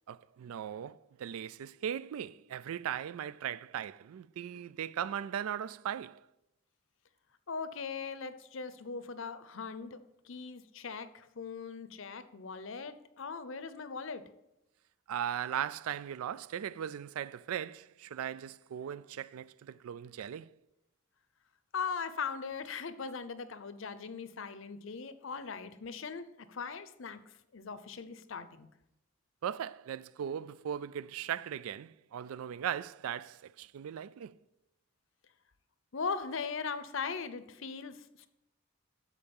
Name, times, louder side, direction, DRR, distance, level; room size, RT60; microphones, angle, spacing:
voice 1, 0.1-6.3 15.1-20.5 29.4-34.4, right 9 dB, 85° right, 0.3 m, -38 dB
voice 2, 7.5-10.0 10.2-14.2 21.7-28.7 35.9-38.3, left 5 dB, 65° left, 0.6 m, -40 dB
12.5 x 4.7 x 5.3 m
head